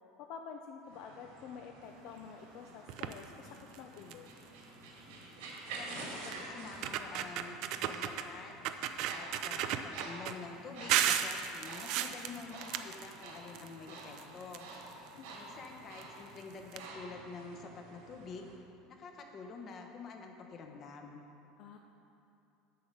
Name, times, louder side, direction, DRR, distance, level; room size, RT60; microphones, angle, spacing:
voice 1, 0.2-3.5 3.8-4.3 15.1-15.4 21.6-21.8, left 6 dB, 60° left, 3 dB, 0.5 m, -48 dB
sound 1, 0.8-18.5, right 2 dB, 85° right, 2.1 m, -49 dB
sound 2, 2.9-3.2 3.7-3.8 4.1-4.4 5.6-5.7 6.3-6.4 6.7-8.3 8.6-10.3 10.9-13.7 14.0-15.1 16.0-16.1 16.4-16.5 16.7-16.8, right 10 dB, 60° right, 0.5 m, -34 dB
voice 2, 5.7-7.6 7.9-8.7 9.1-14.7 15.3-18.5 18.9-21.2, left 4 dB, 35° left, 3 dB, 1.1 m, -48 dB
8.5 x 5.5 x 7.7 m, 2.9 s
supercardioid pair, 130°, 0 cm